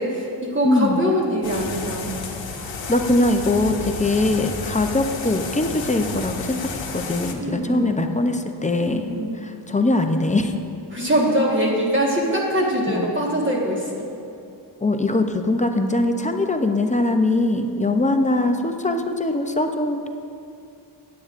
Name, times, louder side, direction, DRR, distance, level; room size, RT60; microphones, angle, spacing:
voice 1, 0.0-2.2 2.5-2.7 7.4-8.0 8.8-9.4 10.9-14.0 17.9-18.0, equal, 25° right, -4 dB, 1.5 m, -23 dB
voice 2, 0.6-1.1 2.9-9.1 9.4-10.5 12.9-13.1 14.8-20.1, left 2 dB, 15° left, 5 dB, 0.5 m, -22 dB
sound 1, 1.4-7.3, left 4 dB, 90° left, 1.0 m, -31 dB
16.0 x 9.5 x 2.5 m, 2.6 s
wide cardioid pair, 140°, 43 cm